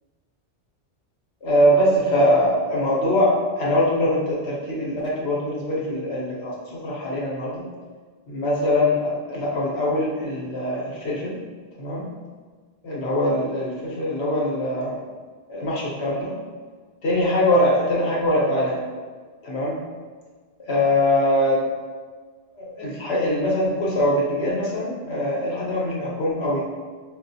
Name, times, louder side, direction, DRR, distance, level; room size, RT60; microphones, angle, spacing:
voice 1, 1.4-3.3 3.6-6.5 6.8-7.5 8.3-11.4 11.8-12.0 12.8-14.9 15.5-16.3 17.0-18.7 19.4-19.7 20.7-21.6 22.6-26.6, left 1 dB, 75° left, -5 dB, 1.2 m, -22 dB
5.1 x 2.5 x 2.6 m, 1.5 s
omnidirectional pair, 1.1 m